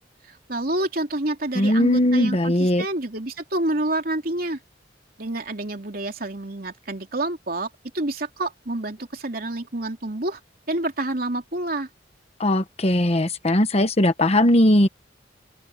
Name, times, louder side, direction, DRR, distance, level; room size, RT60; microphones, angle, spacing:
voice 1, 0.3-4.6 5.2-7.7 7.9-10.4 10.7-11.9, right 2 dB, 55° right, 3.2 m, -28 dB
voice 2, 1.5-2.8 12.4-14.9, left 1 dB, 35° left, 1.3 m, -19 dB
open air
head